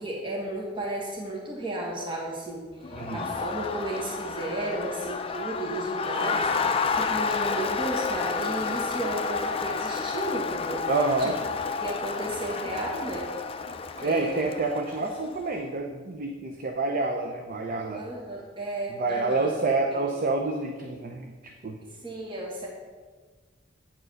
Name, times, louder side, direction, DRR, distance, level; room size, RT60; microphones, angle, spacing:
voice 1, 0.0-10.8 11.2-11.3 11.8-13.3 14.0-14.5 18.0-19.5 21.8-22.7, right 1 dB, 25° right, -4 dB, 1.5 m, -33 dB
Crowd, 2.8-15.4, left 5 dB, 30° left, 0.4 m, -30 dB
voice 2, 2.9-3.3 10.9-11.4 14.0-18.0 18.9-21.8, right 3 dB, 45° right, 4 dB, 0.6 m, -28 dB
8.9 x 4.8 x 6.3 m, 1.4 s
head